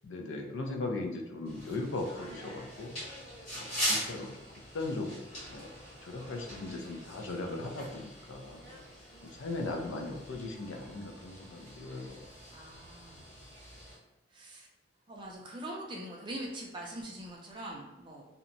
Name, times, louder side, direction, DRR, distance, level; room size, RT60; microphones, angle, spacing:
voice 1, 0.0-3.0 3.7-4.3 4.7-5.7 6.0-8.6 9.2-12.3, left 2 dB, 75° left, 3 dB, 0.4 m, -38 dB
sound 1, 1.4-13.9, equal, 35° left, 1.4 m, -42 dB
voice 2, 12.5-13.3 14.3-14.7 15.1-18.3, right 1 dB, 25° right, -1 dB, 0.4 m, -43 dB
2.7 x 2.1 x 2.6 m, 1.0 s
head